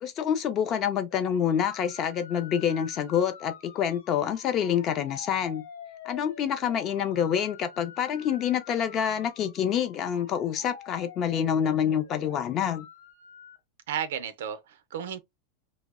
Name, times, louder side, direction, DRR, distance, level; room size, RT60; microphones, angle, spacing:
voice 1, 0.0-5.6 6.0-12.9, left 8 dB, 30° left, 0.4 m, -27 dB
sound 1, 1.1-13.6, left 7 dB, 90° left, 0.5 m, -47 dB
voice 2, 13.9-15.2, right 9 dB, 85° right, 0.4 m, -33 dB
2.6 x 2.0 x 2.3 m
supercardioid pair, 160°, 0 cm